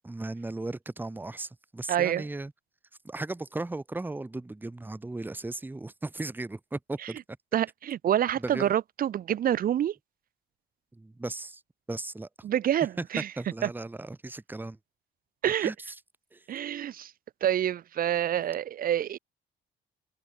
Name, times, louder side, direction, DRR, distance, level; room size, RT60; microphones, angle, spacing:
voice 1, 0.0-2.5 3.0-7.2 8.4-8.7 10.9-11.6 11.9-12.3 13.4-14.8 15.6-15.7 16.3-16.4, right 2 dB, 10° right, 0.8 m, -36 dB
voice 2, 1.9-2.3 7.5-9.9 12.4-13.3 13.6-13.7 15.4-15.7 16.5-17.1 17.4-19.2, right 10 dB, 45° right, 0.4 m, -27 dB
cardioid pair, 90°, 20 cm